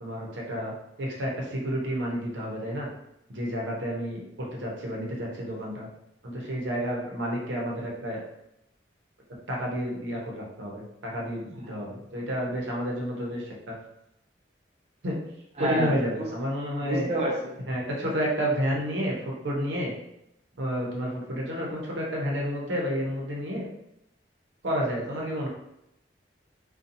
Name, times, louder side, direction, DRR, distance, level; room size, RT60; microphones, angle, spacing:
voice 1, 0.0-2.9 3.3-5.9 6.2-8.2 9.5-13.7 15.0-15.1 15.6-17.1 17.7-19.9 20.6-23.7 24.6-25.5, equal, 85° right, -2 dB, 0.7 m, -30 dB
voice 2, 15.6-15.9 16.2-16.3 16.8-17.6, right 1 dB, 35° right, -4 dB, 0.4 m, -28 dB
2.7 x 2.2 x 2.6 m, 0.84 s
head